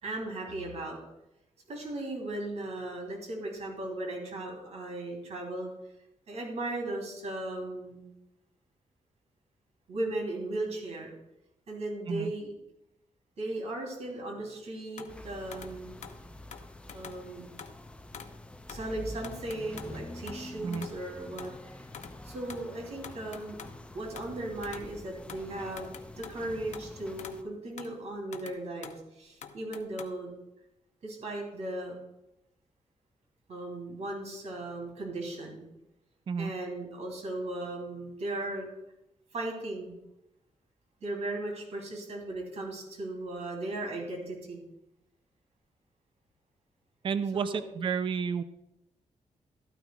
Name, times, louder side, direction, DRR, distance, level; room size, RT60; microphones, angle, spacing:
voice 1, 0.0-1.0 1.7-5.7 6.3-8.1 9.9-11.1 11.7-12.5 13.4-16.0 16.9-17.5 18.7-21.5 22.2-23.6 23.9-25.9 26.2-30.3 31.0-32.0 33.5-35.7 36.4-38.7 39.3-40.0 41.0-44.6 47.3-47.6, right 2 dB, 65° right, 1 dB, 3.2 m, -37 dB
sound 1, 15.0-15.2 15.5-16.2 16.5-17.3 17.6-17.8 18.1-18.4 18.7-18.9 19.2-20.0 20.3-20.5 20.7-21.0 21.4-21.6 21.9-22.2 22.5-23.8 24.2-24.9 25.3-26.9 27.2-27.5 27.8-28.0 28.3-29.0 29.4-30.1, left 7 dB, 75° left, 0.8 m, -46 dB
sound 2, 15.1-27.4, left 1 dB, 10° left, 0.6 m, -46 dB
voice 2, 47.0-48.4, right 6 dB, 40° right, 11 dB, 0.4 m, -31 dB
13.5 x 12.5 x 2.4 m, 0.87 s
wide cardioid pair, 165°, 12 cm